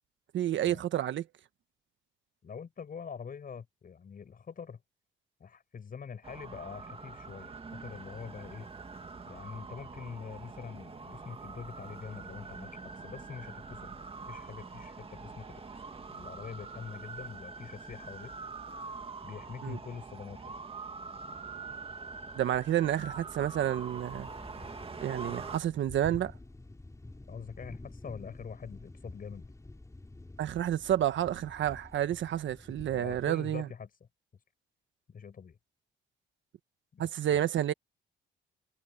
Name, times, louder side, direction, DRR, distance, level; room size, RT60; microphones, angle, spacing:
voice 1, 0.3-1.2 19.6-19.8 22.3-24.3 25.0-26.3 30.4-33.7 37.0-37.7, right 11 dB, 70° right, 1.5 m, -30 dB
voice 2, 2.4-4.8 5.4-8.7 9.3-14.0 14.3-15.6 16.1-18.4 19.2-20.6 27.3-29.5 32.9-33.9 35.1-35.6 36.9-37.4, left 6 dB, 45° left, 7.0 m, -44 dB
sound 1, 6.2-25.6, right 4 dB, 30° right, 2.3 m, -44 dB
sound 2, 21.8-33.4, left 2 dB, 15° left, 4.9 m, -50 dB
cardioid pair, 90°, 20 cm